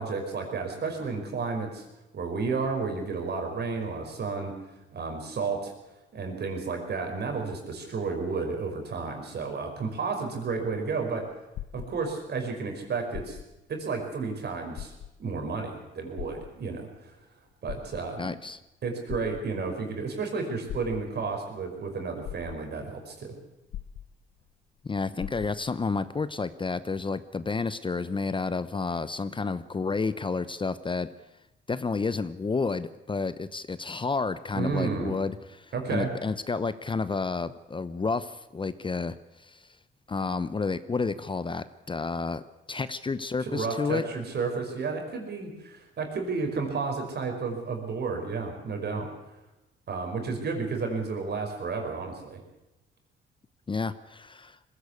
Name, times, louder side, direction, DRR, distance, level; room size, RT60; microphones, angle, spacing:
voice 1, 0.0-1.8 2.1-4.5 4.9-5.7 6.1-11.3 11.7-13.4 13.7-14.9 15.2-17.1 17.6-18.4 18.8-23.3 34.5-35.1 35.7-36.1 43.4-49.1 49.9-52.4, right 4 dB, 55° right, 4 dB, 5.5 m, -32 dB
sound 1, 11.6-12.4 13.0-13.7 14.1-14.2 14.7-15.4 16.2-17.0 17.5-18.4 19.1-19.8 20.7-21.4 21.9-22.0 22.2-23.0 23.7-24.5 24.8-24.9 25.2-25.8 26.5-26.6, left 11 dB, 80° left, 1.0 m, -41 dB
voice 2, 18.2-18.6 24.8-31.1 31.7-39.6 40.1-42.4 42.7-44.0 53.7-54.6, left 4 dB, 25° left, 14 dB, 0.8 m, -30 dB
20.5 x 16.0 x 8.4 m, 0.93 s
cardioid pair, 90°, 20 cm